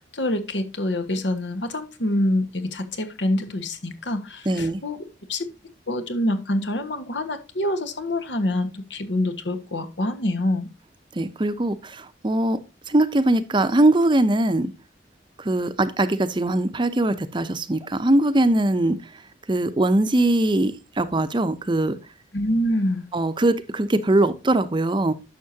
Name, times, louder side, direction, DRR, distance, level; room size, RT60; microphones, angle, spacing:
voice 1, 0.0-5.0 5.3-5.4 5.9-10.7 22.3-23.0, left 1 dB, 80° left, 1.5 m, -26 dB
voice 2, 4.5-4.8 11.1-12.6 12.9-14.7 15.4-19.1 19.5-22.0 23.1-25.1, right 1 dB, 25° right, 0.6 m, -21 dB
11.0 x 6.6 x 2.8 m
head